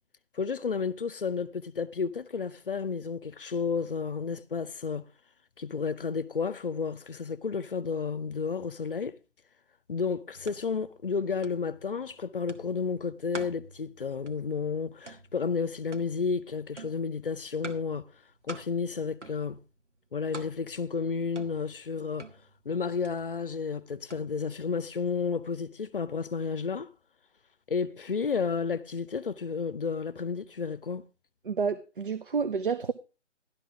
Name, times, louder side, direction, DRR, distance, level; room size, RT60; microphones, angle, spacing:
voice 1, 0.3-5.1 5.6-9.2 9.9-18.1 18.4-19.6 20.1-22.3 22.6-26.9 27.7-31.0, left 5 dB, 50° left, 0.7 m, -32 dB
sound 1, 10.3-25.5, right 3 dB, 80° right, 1.4 m, -48 dB
voice 2, 31.5-32.9, right 5 dB, 50° right, 0.6 m, -29 dB
12.5 x 11.5 x 3.6 m
figure-of-eight pair, 145°, 35 cm